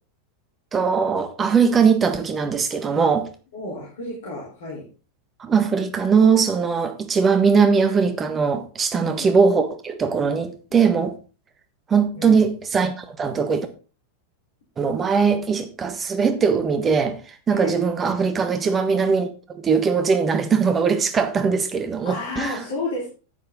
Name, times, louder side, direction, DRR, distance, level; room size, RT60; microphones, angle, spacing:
voice 1, 0.7-3.3 5.4-11.1 11.9-13.7 14.8-22.6, right 5 dB, 20° right, 1.4 m, -20 dB
voice 2, 3.5-4.8 8.9-9.3 12.2-12.4 17.5-17.7 22.0-23.1, left 2 dB, 55° left, 3.8 m, -31 dB
10.5 x 9.5 x 3.8 m
figure-of-eight pair, 90°, 0 cm